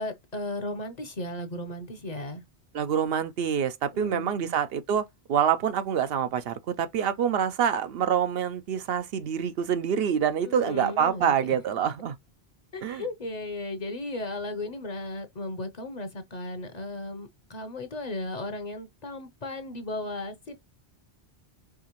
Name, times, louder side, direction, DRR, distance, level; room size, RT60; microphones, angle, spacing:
voice 1, 0.0-2.4 3.9-4.5 10.4-11.3 12.7-20.6, left 2 dB, 45° left, 0.7 m, -35 dB
voice 2, 2.7-12.2 12.8-13.0, right 8 dB, 70° right, 0.8 m, -26 dB
4.8 x 2.9 x 2.9 m
omnidirectional pair, 1.1 m